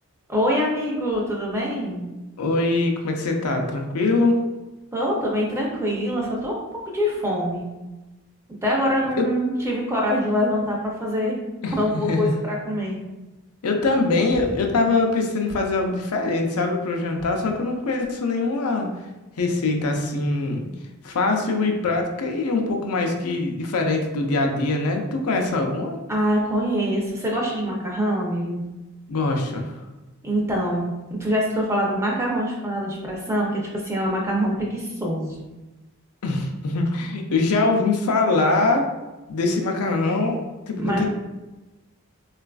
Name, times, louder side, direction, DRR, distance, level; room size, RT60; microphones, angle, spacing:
voice 1, 0.3-2.0 4.9-6.6 6.9-7.6 8.6-11.4 11.7-13.0 26.1-28.6 30.2-30.9 31.2-35.4 40.8-41.0, equal, 10° right, -2 dB, 0.5 m, -24 dB
voice 2, 2.4-4.4 9.2-9.3 11.6-12.3 13.6-18.9 19.4-20.7 21.0-25.9 29.1-29.7 36.2-38.9 39.3-41.1, left 3 dB, 85° left, 3 dB, 0.5 m, -23 dB
3.9 x 2.4 x 2.3 m, 1.1 s
head